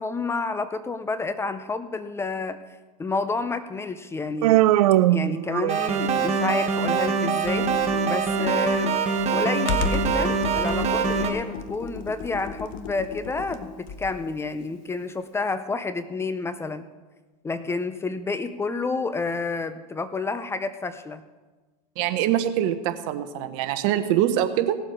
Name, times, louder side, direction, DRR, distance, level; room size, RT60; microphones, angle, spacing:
voice 1, 0.0-2.6 3.0-4.6 5.1-7.7 8.1-9.0 9.3-16.9 17.4-21.2, left 3 dB, 15° left, 11 dB, 0.5 m, -29 dB
Human voice, 4.4-6.1, right 15 dB, 75° right, 0.5 m, -20 dB
sound 1, 5.7-11.3, right 5 dB, 35° right, 1.5 m, -24 dB
Computer keyboard, 7.4-14.3, left 5 dB, 45° left, 1.1 m, -33 dB
voice 2, 22.0-24.8, right 11 dB, 55° right, 10 dB, 1.1 m, -24 dB
17.5 x 7.4 x 4.9 m, 1.3 s
hypercardioid pair, 120°, 20 cm